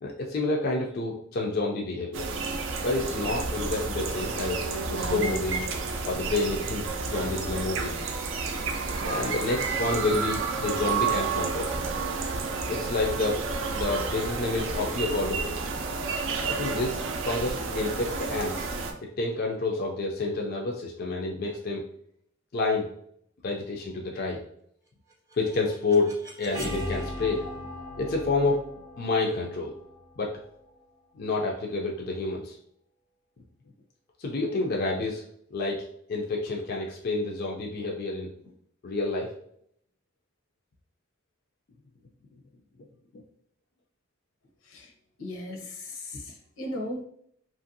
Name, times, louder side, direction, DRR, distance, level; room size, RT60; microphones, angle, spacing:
voice 1, 0.0-2.3 2.8-5.6 6.0-8.0 8.5-11.9 12.7-13.4 13.7-15.7 16.4-18.7 19.2-21.8 22.5-22.9 23.4-24.4 25.3-27.5 28.0-28.6 29.0-29.7 30.2-30.4 31.1-32.6 34.2-35.2 35.5-38.3 38.8-39.3, left 3 dB, 45° left, -1 dB, 0.4 m, -29 dB
sound 1, 2.1-18.9, right 4 dB, 70° right, 0.4 m, -30 dB
sound 2, 25.1-31.0, equal, 15° right, 0.6 m, -39 dB
voice 2, 45.2-46.2 46.6-47.0, left 1 dB, 85° left, 1 dB, 0.7 m, -36 dB
2.9 x 2.5 x 2.6 m, 0.68 s
head